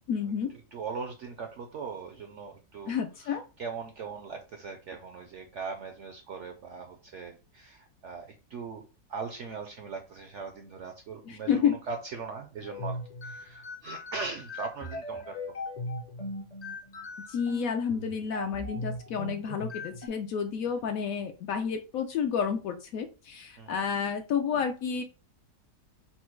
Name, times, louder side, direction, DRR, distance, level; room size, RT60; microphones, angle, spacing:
voice 1, 0.1-0.5 2.9-3.4 11.3-11.7 17.3-25.0, left 7 dB, 70° left, 6 dB, 0.9 m, -30 dB
voice 2, 0.7-2.9 3.2-8.8 9.1-15.3 23.6-23.8, right 5 dB, 70° right, 5 dB, 0.7 m, -40 dB
sound 1, 12.6-20.1, left 1 dB, 55° left, 0.4 m, -39 dB
4.2 x 2.2 x 4.4 m, 0.31 s
omnidirectional pair, 1.8 m